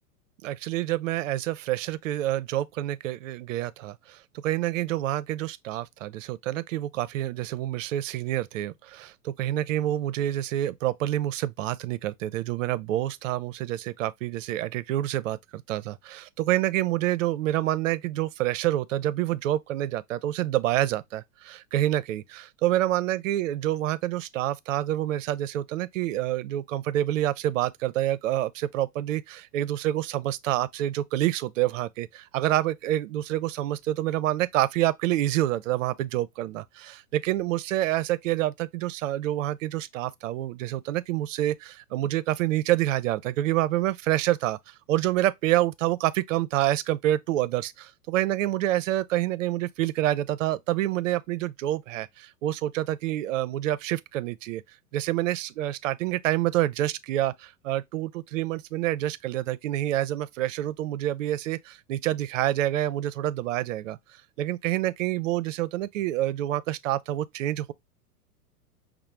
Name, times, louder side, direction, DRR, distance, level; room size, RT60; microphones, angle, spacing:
voice 1, 0.4-54.6 54.9-64.0 64.4-67.7, right 14 dB, 55° right, 0.5 m, -27 dB
5.6 x 2.0 x 3.0 m
figure-of-eight pair, 100°, 47 cm